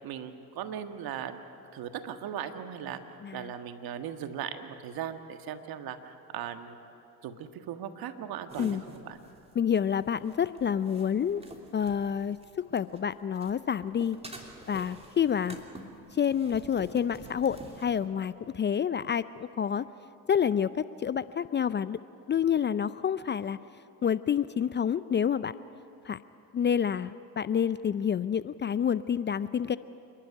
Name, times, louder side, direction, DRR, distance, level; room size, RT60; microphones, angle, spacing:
voice 1, 0.0-1.4 1.7-3.0 3.3-6.8 7.2-9.2, right 9 dB, 60° right, 8 dB, 1.6 m, -38 dB
sound 1, 8.5-13.0 13.3-18.0, right 1 dB, 15° right, 3.0 m, -48 dB
voice 2, 9.6-11.4 11.7-12.4 12.7-14.2 14.7-15.6 16.1-19.9 20.3-22.0 22.3-23.6 24.0-25.5 26.0-26.2 26.5-29.8, left 8 dB, 30° left, 15 dB, 0.5 m, -28 dB
27.5 x 11.5 x 9.8 m, 2.7 s
hypercardioid pair, 70°, 40 cm